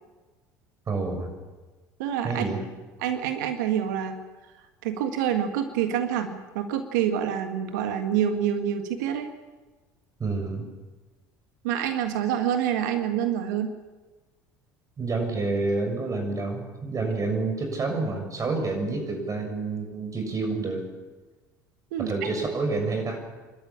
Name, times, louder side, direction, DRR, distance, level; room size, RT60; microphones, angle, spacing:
voice 1, 0.9-1.3 2.2-2.6 10.2-10.6 15.0-20.8 22.0-23.2, right 3 dB, 35° right, 4 dB, 6.6 m, -28 dB
voice 2, 2.0-2.4 3.0-4.2 4.8-9.3 11.6-13.7 21.9-22.1, right 9 dB, 70° right, 7 dB, 1.7 m, -27 dB
25.0 x 13.0 x 8.7 m, 1.3 s
hypercardioid pair, 65°, 10 cm